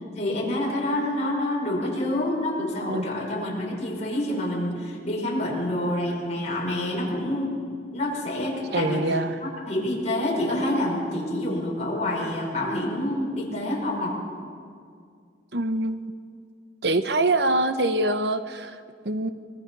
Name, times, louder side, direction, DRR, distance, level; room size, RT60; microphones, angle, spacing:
voice 1, 0.1-7.6 7.9-9.0 9.4-14.2, left 1 dB, 40° left, -3 dB, 5.5 m, -27 dB
voice 2, 8.7-9.4 15.5-16.1 16.8-19.3, right 2 dB, 65° right, 9 dB, 1.1 m, -25 dB
24.5 x 21.0 x 5.5 m, 2.2 s
head